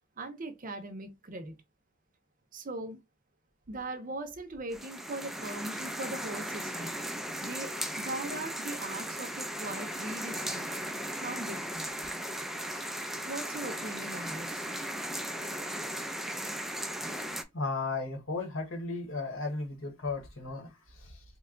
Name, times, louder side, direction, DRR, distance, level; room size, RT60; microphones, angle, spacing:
voice 1, 0.2-1.6 2.5-3.0 3.7-7.0 7.4-10.7 11.2-11.9 13.2-14.6, right 2 dB, 45° right, 0.6 m, -40 dB
sound 1, 4.7-17.4, equal, ahead, 0.4 m, -37 dB
voice 2, 17.5-21.2, left 3 dB, 80° left, 1.3 m, -35 dB
3.1 x 2.2 x 3.7 m
head